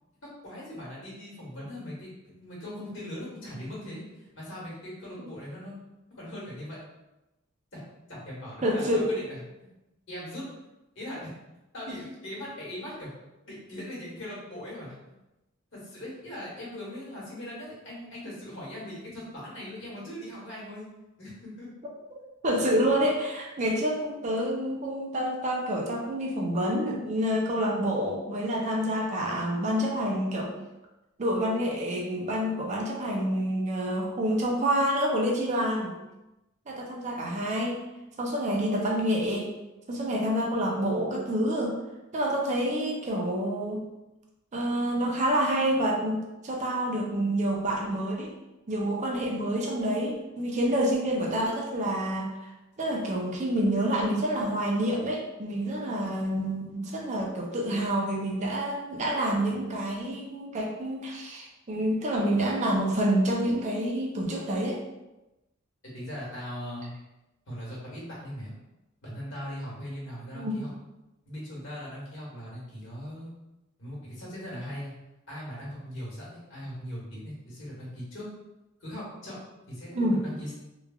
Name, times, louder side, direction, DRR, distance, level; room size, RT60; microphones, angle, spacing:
voice 1, 0.2-5.8 6.1-6.8 7.7-7.8 8.1-9.7 10.1-10.5 10.9-11.3 11.7-13.1 13.4-15.0 15.7-20.8 21.2-21.7 65.9-67.0 67.5-68.5 69.0-70.7 71.2-73.3 73.8-74.9 75.3-78.3 78.8-79.4 79.7-80.5, equal, 65° left, -6 dB, 1.2 m, -40 dB
voice 2, 8.6-9.1 22.1-30.5 31.2-36.0 36.7-37.8 38.2-39.5 39.9-41.8 42.1-43.8 44.5-48.3 48.7-52.5 52.8-64.8 70.3-70.7 79.9-80.2, equal, 35° right, -1 dB, 0.5 m, -28 dB
3.1 x 2.3 x 2.3 m, 0.98 s
head